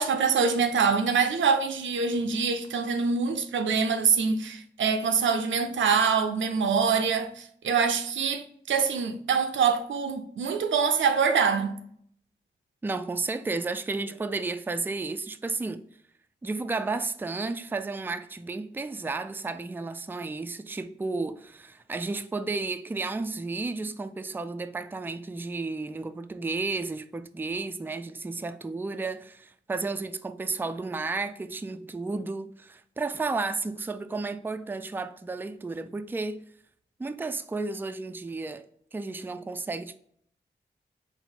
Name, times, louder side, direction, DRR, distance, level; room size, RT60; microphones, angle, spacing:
voice 1, 0.0-11.8, right 5 dB, 85° right, 0.5 m, -25 dB
voice 2, 12.8-15.8 16.4-36.4 37.0-38.7 38.9-40.0, right 3 dB, 10° right, 0.3 m, -32 dB
4.0 x 2.1 x 4.3 m
cardioid pair, 40°, 19 cm